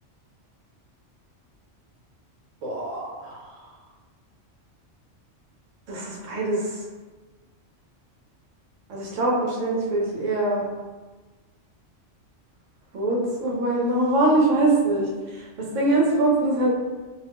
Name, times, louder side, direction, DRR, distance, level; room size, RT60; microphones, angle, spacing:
voice 1, 2.6-3.4 5.9-6.8 8.9-10.6 12.9-16.7, right 2 dB, 85° right, -3 dB, 1.1 m, -23 dB
2.5 x 2.5 x 3.4 m, 1.3 s
omnidirectional pair, 1.3 m